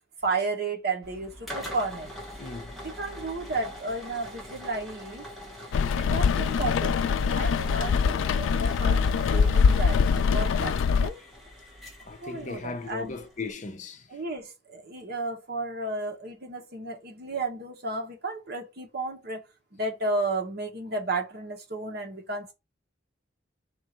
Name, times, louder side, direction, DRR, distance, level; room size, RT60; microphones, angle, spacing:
voice 1, 0.2-2.1 2.8-5.3 5.9-11.2 12.2-13.2 14.1-19.4 19.7-22.5, right 2 dB, 55° right, 1.2 m, -33 dB
sound 1, 1.0-13.5, equal, ahead, 1.2 m, -43 dB
voice 2, 2.4-2.8 5.7-6.1 10.6-10.7 12.1-14.2, left 3 dB, 40° left, 0.6 m, -38 dB
Rain, 5.7-11.1, left 6 dB, 85° left, 0.3 m, -23 dB
3.7 x 2.5 x 4.2 m
head